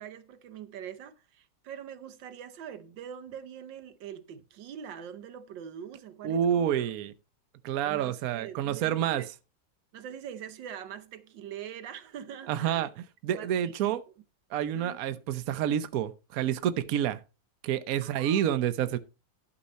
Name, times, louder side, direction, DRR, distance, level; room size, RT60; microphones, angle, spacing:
voice 1, 0.0-6.9 7.8-9.3 9.9-12.9 13.3-14.0 14.7-15.0 18.0-18.5, right 9 dB, 85° right, 1.5 m, -43 dB
voice 2, 6.2-7.1 7.6-9.2 12.5-14.0 14.5-17.2 17.6-19.0, right 10 dB, 60° right, 1.1 m, -28 dB
11.5 x 5.5 x 4.2 m
omnidirectional pair, 1.9 m